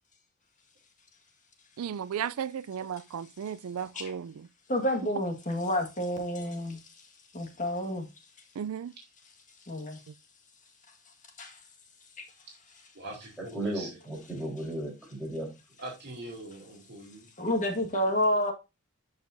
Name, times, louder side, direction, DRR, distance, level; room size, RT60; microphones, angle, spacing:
voice 1, 1.8-4.5 8.6-8.9 10.1-10.2, right 8 dB, 85° right, 0.4 m, -35 dB
voice 2, 4.7-6.8 7.3-8.1 9.6-10.0 11.4-11.6 17.4-18.5, left 1 dB, 35° left, 1.7 m, -29 dB
voice 3, 12.9-13.9 15.8-17.3, right 2 dB, 55° right, 2.9 m, -42 dB
voice 4, 13.5-15.5, right 1 dB, ahead, 3.8 m, -35 dB
11.5 x 5.3 x 2.6 m
head